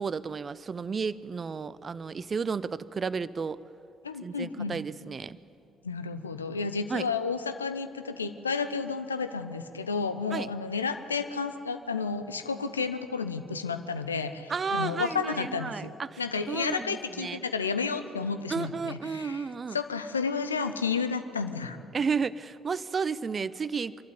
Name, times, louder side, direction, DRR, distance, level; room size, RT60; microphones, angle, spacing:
voice 1, 0.0-3.6 4.2-5.4 6.9-7.1 10.3-10.5 14.5-17.4 18.5-19.8 21.9-24.0, right 5 dB, 35° right, 18 dB, 0.6 m, -32 dB
voice 2, 4.0-4.8 5.8-15.9 16.2-19.4 19.7-21.8, left 5 dB, 85° left, 10 dB, 0.7 m, -31 dB
25.0 x 12.0 x 9.7 m, 2.7 s
figure-of-eight pair, 45°, 0 cm